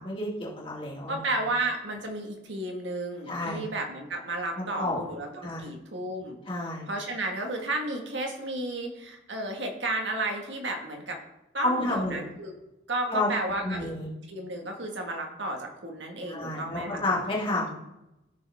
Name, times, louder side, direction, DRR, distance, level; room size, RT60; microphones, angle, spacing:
voice 1, 0.0-1.2 3.3-3.6 4.6-5.0 5.4-5.6 6.5-6.8 11.6-12.2 13.1-13.3 13.6-14.1 16.3-17.7, left 2 dB, 30° left, -5 dB, 2.6 m, -30 dB
voice 2, 1.1-6.4 6.8-11.2 11.5-12.5 12.9-13.9 14.3-17.1, right 2 dB, 75° right, 2 dB, 1.8 m, -32 dB
14.5 x 6.5 x 3.6 m, 0.91 s
head